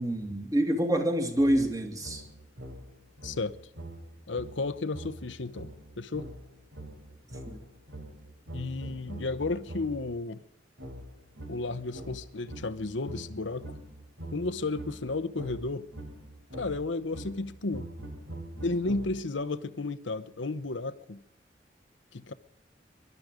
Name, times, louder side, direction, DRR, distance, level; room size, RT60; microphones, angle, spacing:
voice 1, 0.0-2.2 7.5-7.6, right 1 dB, 20° right, 2.4 m, -27 dB
sound 1, 1.4-10.1 10.8-19.4, right 1 dB, 75° right, 4.0 m, -44 dB
voice 2, 4.3-6.3 8.5-10.4 11.5-13.8 14.3-15.9 16.5-17.9 18.6-21.2 22.1-22.3, left 3 dB, 80° left, 0.9 m, -33 dB
23.0 x 12.5 x 5.1 m
head